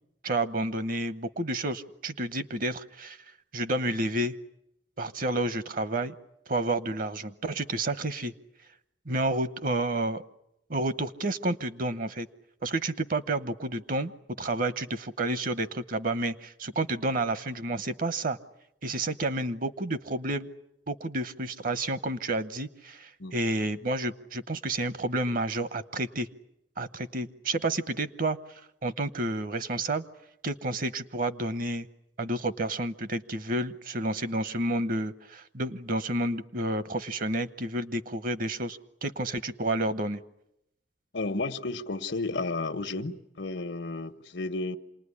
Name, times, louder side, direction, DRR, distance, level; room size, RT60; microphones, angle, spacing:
voice 1, 0.2-3.2 3.5-4.3 5.0-6.1 6.5-8.3 9.1-10.2 10.7-12.3 12.6-14.1 14.4-18.4 18.8-20.5 20.9-26.3 26.8-28.4 28.8-30.0 30.4-31.9 32.2-40.2, right 2 dB, 50° right, 13 dB, 0.9 m, -30 dB
voice 2, 41.1-44.8, left 3 dB, 90° left, 9 dB, 1.3 m, -32 dB
27.0 x 20.0 x 9.9 m, 0.82 s
head